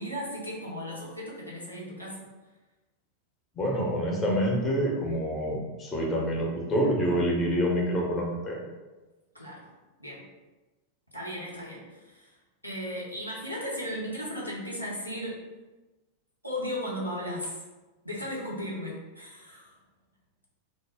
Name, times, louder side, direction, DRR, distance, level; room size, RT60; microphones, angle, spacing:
voice 1, 0.0-2.3 9.3-9.7 10.0-10.2 11.1-12.3 12.6-15.4 16.4-17.6 18.0-19.7, equal, 90° left, -6 dB, 0.6 m, -36 dB
voice 2, 3.6-8.6, equal, 20° left, -2 dB, 0.6 m, -27 dB
2.1 x 2.1 x 3.3 m, 1.2 s
figure-of-eight pair, 90°, 0 cm